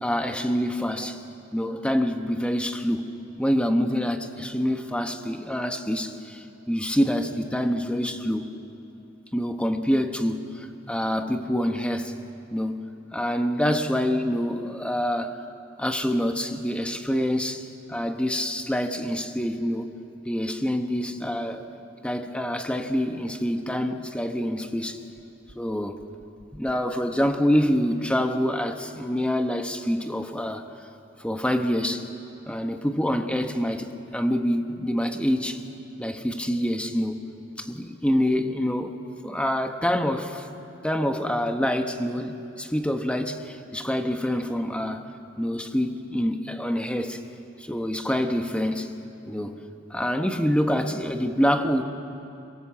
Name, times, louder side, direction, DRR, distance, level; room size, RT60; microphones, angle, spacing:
voice 1, 0.0-1.2 1.5-3.1 3.4-8.5 9.3-12.1 12.5-15.4 15.8-19.9 20.2-21.6 22.0-25.0 25.5-26.0 26.5-30.6 31.2-32.1 32.5-35.6 36.0-37.2 37.6-40.5 40.8-45.1 45.4-47.2 47.6-48.9 49.3-49.6 49.9-51.8, equal, 5° left, 6 dB, 1.2 m, -26 dB
25.5 x 23.5 x 7.4 m, 2.8 s
head